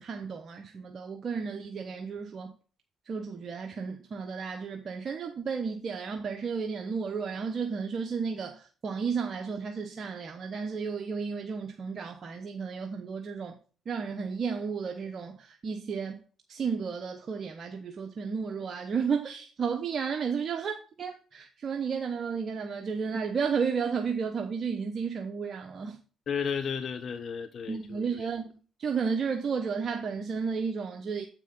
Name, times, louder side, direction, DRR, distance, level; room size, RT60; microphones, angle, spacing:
voice 1, 0.0-2.5 3.1-13.6 13.9-16.2 16.5-26.0 27.7-28.5 28.8-31.3, right 5 dB, 50° right, 1.0 m, -33 dB
voice 2, 26.3-28.3, left 6 dB, 60° left, 0.9 m, -33 dB
7.9 x 6.1 x 3.7 m
supercardioid pair, 65°, 0 cm